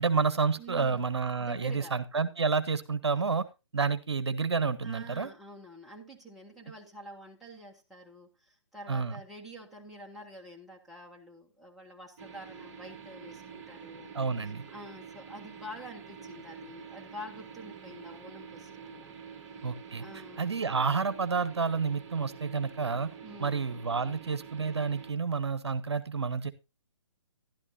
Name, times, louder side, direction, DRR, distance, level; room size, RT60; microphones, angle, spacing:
voice 1, 0.0-3.5 3.7-5.3 8.9-9.2 14.1-14.6 19.6-20.0 20.4-23.1 23.4-26.5, right 5 dB, 65° right, 13 dB, 0.9 m, -29 dB
voice 2, 0.6-1.0 1.4-1.9 4.8-19.4 20.0-20.5 23.2-23.6, equal, ahead, -3 dB, 1.4 m, -47 dB
sound 1, 12.2-25.1, right 6 dB, 30° right, 1.7 m, -47 dB
13.0 x 11.5 x 2.7 m, 0.27 s
figure-of-eight pair, 140°, 15 cm